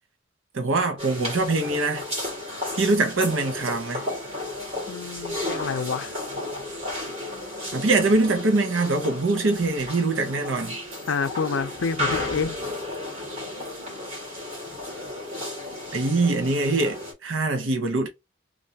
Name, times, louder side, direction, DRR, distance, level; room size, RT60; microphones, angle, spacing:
voice 1, 0.5-2.0 2.7-4.1 7.7-10.8 15.9-18.1, right 3 dB, 90° right, 0.8 m, -23 dB
sound 1, 1.0-17.1, left 1 dB, 30° right, 1.8 m, -33 dB
voice 2, 4.9-6.1 11.1-12.6, left 5 dB, 85° left, 0.5 m, -28 dB
3.2 x 2.6 x 2.8 m
head